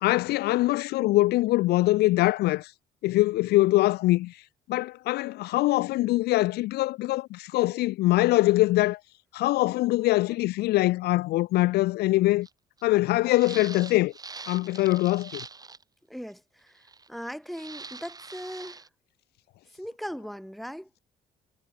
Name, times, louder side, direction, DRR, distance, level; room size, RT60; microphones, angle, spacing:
voice 1, 0.0-2.7 3.0-4.4 4.7-9.0 9.3-12.5 12.8-14.1 14.5-15.4, left 18 dB, 70° left, 0.4 m, -23 dB
sound 1, 12.4-12.5 12.8-12.9 13.2-15.8 16.8-17.3 17.5-18.9, right 4 dB, 20° right, 3.7 m, -43 dB
voice 2, 16.1-16.8 17.1-18.9 19.7-20.9, equal, ahead, 4.8 m, -39 dB
cardioid pair, 110°, 17 cm